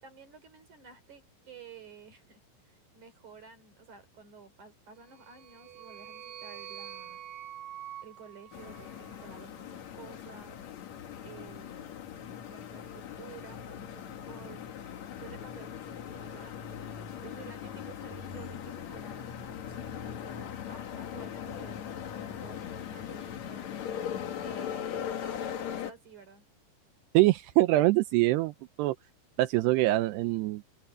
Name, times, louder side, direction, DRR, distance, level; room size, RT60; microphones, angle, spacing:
voice 1, 0.0-7.2 8.0-10.6 11.2-12.0 12.5-14.6 15.2-16.6 17.2-23.7 24.4-26.4, right 5 dB, 45° right, 4.5 m, -52 dB
sound 1, 5.1-9.4, right 10 dB, 65° right, 2.4 m, -46 dB
sound 2, 8.5-25.9, left 9 dB, 60° left, 2.0 m, -40 dB
voice 2, 27.1-29.0 29.4-30.6, right 18 dB, 80° right, 2.6 m, -24 dB
open air
omnidirectional pair, 5.3 m